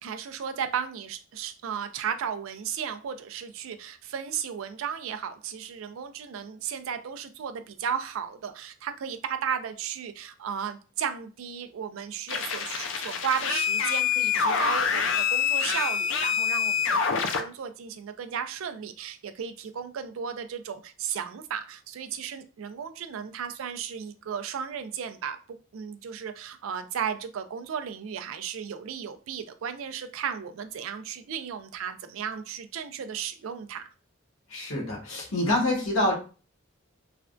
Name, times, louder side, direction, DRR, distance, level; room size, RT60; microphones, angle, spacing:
voice 1, 0.0-33.8, right 7 dB, 75° right, 9 dB, 0.4 m, -35 dB
sound 1, 12.3-17.4, left 6 dB, 60° left, 0.4 m, -26 dB
voice 2, 34.5-36.2, left 1 dB, 80° left, -1 dB, 1.0 m, -26 dB
3.3 x 2.2 x 2.5 m, 0.35 s
head